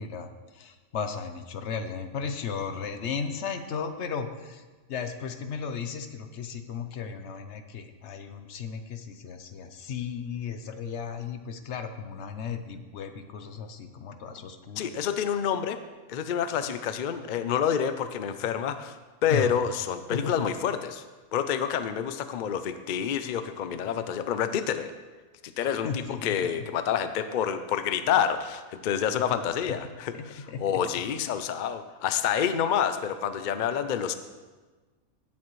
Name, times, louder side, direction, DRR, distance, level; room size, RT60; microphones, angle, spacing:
voice 1, 0.0-4.6 4.9-14.9 19.3-19.5 20.1-20.5 25.6-26.6 29.1-29.4 30.1-30.6, left 6 dB, 60° left, 8 dB, 0.9 m, -35 dB
voice 2, 14.8-15.8 16.1-21.0 21.3-24.9 25.4-34.1, left 8 dB, 75° left, 10 dB, 0.4 m, -28 dB
17.0 x 7.4 x 3.1 m, 1.3 s
omnidirectional pair, 1.5 m